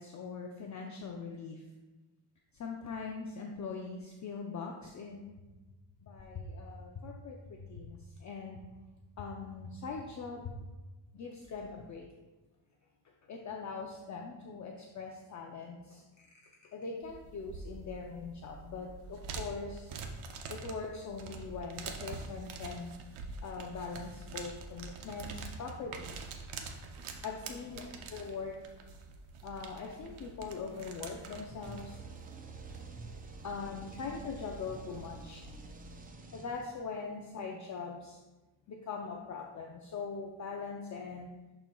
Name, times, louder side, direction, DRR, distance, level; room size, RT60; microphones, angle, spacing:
voice 1, 0.0-1.6 2.6-5.3 6.0-8.6 9.2-10.5 11.1-12.1 13.3-16.0 16.7-19.9 20.5-22.9 23.4-26.1 27.2-27.8 28.1-28.6 29.4-32.0 33.4-35.4 36.3-38.2 38.7-41.3, left 4 dB, 40° left, 0 dB, 0.5 m, -41 dB
sound 1, 17.0-36.1, right 4 dB, 90° right, 0.8 m, -46 dB
sound 2, 31.5-36.9, right 4 dB, 20° right, 0.3 m, -49 dB
11.0 x 4.4 x 2.3 m, 1.1 s
cardioid pair, 150°, 48 cm